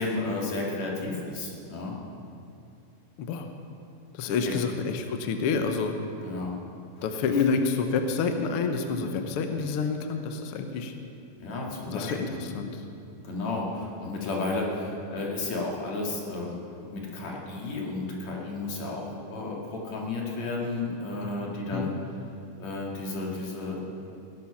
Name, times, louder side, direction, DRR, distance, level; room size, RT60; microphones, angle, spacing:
voice 1, 0.0-2.0 4.5-4.6 6.2-6.6 7.0-7.1 11.4-12.4 13.2-16.6 16.9-21.9 22.6-23.8, left 2 dB, 55° left, -2 dB, 3.4 m, -32 dB
voice 2, 3.2-3.5 4.1-5.9 7.0-10.9 11.9-12.8 21.7-21.9, left 5 dB, 75° left, 6 dB, 1.2 m, -28 dB
17.5 x 12.0 x 5.9 m, 2.6 s
omnidirectional pair, 3.8 m